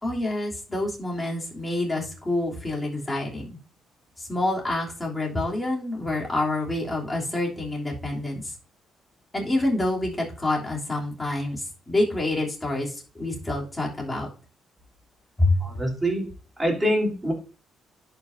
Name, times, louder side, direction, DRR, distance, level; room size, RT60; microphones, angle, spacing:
voice 1, 0.0-3.6 4.2-8.5 9.3-14.3 15.4-15.6, left 2 dB, 15° left, -3 dB, 3.1 m, -27 dB
voice 2, 15.6-16.3 16.6-17.3, equal, 15° right, -1 dB, 3.5 m, -25 dB
11.0 x 5.4 x 2.7 m, 0.35 s
cardioid pair, 90°, 0 cm